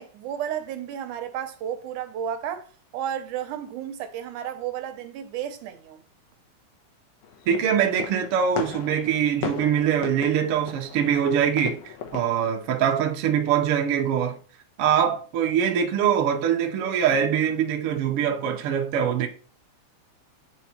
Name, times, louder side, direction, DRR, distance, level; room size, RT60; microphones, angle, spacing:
voice 1, 0.0-2.7 2.9-6.0, right 9 dB, 80° right, 2.2 m, -32 dB
sound 1, 7.2-12.2, left 8 dB, 80° left, 2.3 m, -37 dB
voice 2, 7.5-11.8 12.1-14.4 14.8-19.3, right 8 dB, 65° right, 1.5 m, -23 dB
8.3 x 4.5 x 3.0 m
omnidirectional pair, 3.5 m